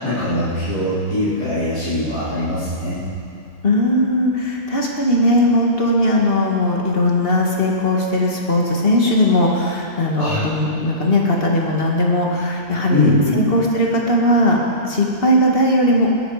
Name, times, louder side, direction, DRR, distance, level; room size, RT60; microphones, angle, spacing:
voice 1, 0.0-3.0 10.2-10.4 12.9-13.5, left 1 dB, 80° left, -15 dB, 4.8 m, -21 dB
voice 2, 3.6-14.6 14.8-16.1, left 1 dB, 35° left, -1 dB, 2.1 m, -18 dB
21.5 x 11.5 x 5.0 m, 2.6 s
omnidirectional pair, 1.7 m